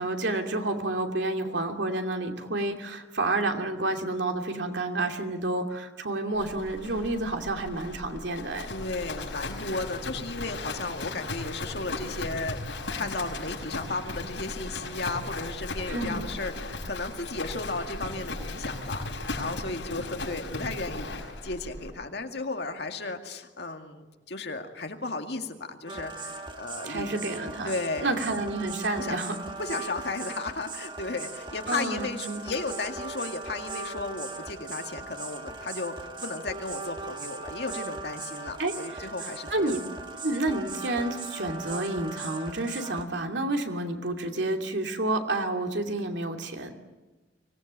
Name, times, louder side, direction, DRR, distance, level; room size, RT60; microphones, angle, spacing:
voice 1, 0.0-8.7 15.9-16.2 26.8-27.7 28.0-29.4 31.7-32.5 38.6-38.7 39.5-39.8 40.2-46.7, right 2 dB, 75° right, 4 dB, 2.7 m, -29 dB
Livestock farm animals working animals, 6.4-21.9, left 2 dB, 85° left, 5.4 m, -37 dB
voice 2, 8.7-12.6 12.9-27.2 27.6-28.2 29.0-39.8, left 3 dB, 60° left, 5 dB, 2.2 m, -35 dB
sound 1, 25.9-43.0, right 3 dB, 25° right, 1.7 m, -39 dB
24.5 x 18.5 x 8.8 m, 1.2 s
head